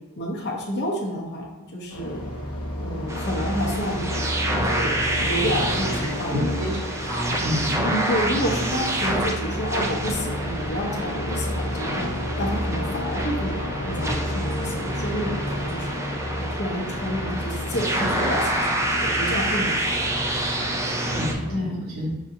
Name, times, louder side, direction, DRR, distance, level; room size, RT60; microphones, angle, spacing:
voice 1, 0.2-1.5 1.7-2.2 2.8-4.2 4.4-6.6 7.8-12.1 12.4-16.0 16.3-20.1 21.5-21.8, equal, 50° left, -2 dB, 0.9 m, -29 dB
sound 1, 1.9-21.5, left 1 dB, 80° left, 1.0 m, -31 dB
sound 2, 3.1-21.3, right 1 dB, 15° right, 0.4 m, -28 dB
voice 2, 6.3-6.7 7.1-7.9 21.1-22.1, left 1 dB, 75° right, -5 dB, 1.3 m, -29 dB
6.1 x 2.7 x 2.7 m, 1.1 s
head